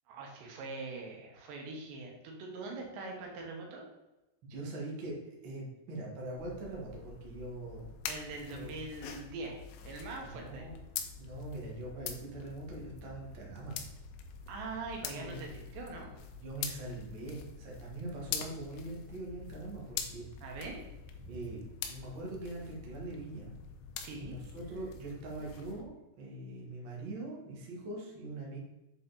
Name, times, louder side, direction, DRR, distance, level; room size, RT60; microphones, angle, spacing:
voice 1, 0.1-3.9 8.1-10.7 14.5-16.1 20.4-20.8 21.2-21.5 24.0-24.4, right 3 dB, 80° right, 1 dB, 3.5 m, -43 dB
voice 2, 4.5-7.9 8.4-8.8 10.2-10.7 11.2-13.8 15.1-15.4 16.3-20.2 21.3-21.6 21.9-23.5 24.2-28.6, right 2 dB, 65° right, -3 dB, 1.2 m, -42 dB
sound 1, 6.4-25.8, left 7 dB, 80° left, 2.1 m, -45 dB
7.4 x 4.2 x 4.0 m, 1.0 s
omnidirectional pair, 4.9 m